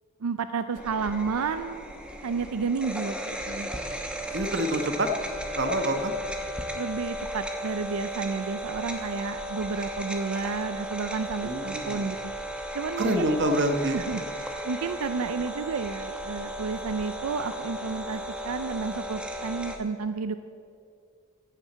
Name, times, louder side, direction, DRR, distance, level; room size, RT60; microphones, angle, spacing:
voice 1, 0.2-1.8 2.2-3.7 6.7-12.3 12.7-13.3 13.9-20.4, right 5 dB, 85° right, 10 dB, 0.5 m, -31 dB
sound 1, 0.8-19.8, right 1 dB, 5° right, 1.0 m, -35 dB
voice 2, 4.3-5.1 5.6-6.1 11.4-12.1 13.0-14.0, right 1 dB, 50° right, 6 dB, 1.1 m, -26 dB
14.5 x 7.4 x 7.9 m, 2.3 s
head